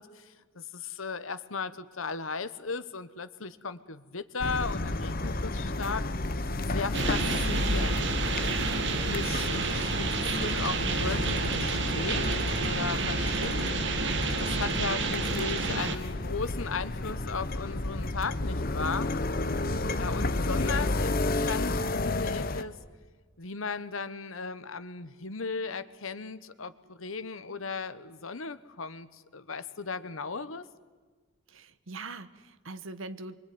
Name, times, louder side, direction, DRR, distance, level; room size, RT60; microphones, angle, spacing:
voice 1, 0.0-6.1 6.6-8.1 9.0-13.9 14.4-19.1 19.9-22.8 23.4-30.7, left 4 dB, 85° left, 13 dB, 1.3 m, -36 dB
sound 1, 4.4-22.6, left 2 dB, 45° left, 1.1 m, -31 dB
sound 2, 6.9-16.0, right 4 dB, 60° right, 2.0 m, -30 dB
voice 2, 31.5-33.4, right 3 dB, 75° right, 11 dB, 1.2 m, -42 dB
25.0 x 23.5 x 9.6 m, 1.4 s
head